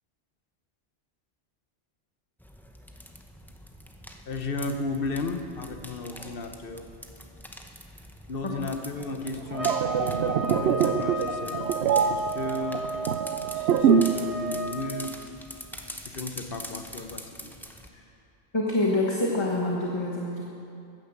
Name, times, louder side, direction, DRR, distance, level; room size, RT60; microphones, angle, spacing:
sound 1, 2.4-17.9, equal, ahead, 0.7 m, -44 dB
voice 1, 4.3-6.9 8.3-13.0 13.5-15.4 16.0-17.6, left 3 dB, 50° left, 6 dB, 1.1 m, -35 dB
sound 2, 9.4-14.3 14.5-14.8, right 7 dB, 70° right, 0.9 m, -24 dB
sound 3, 9.5-15.0, right 2 dB, 35° right, 0.8 m, -34 dB
voice 2, 18.5-20.4, left 1 dB, 25° left, -2 dB, 1.3 m, -26 dB
14.5 x 10.5 x 7.2 m, 2.6 s
omnidirectional pair, 1.2 m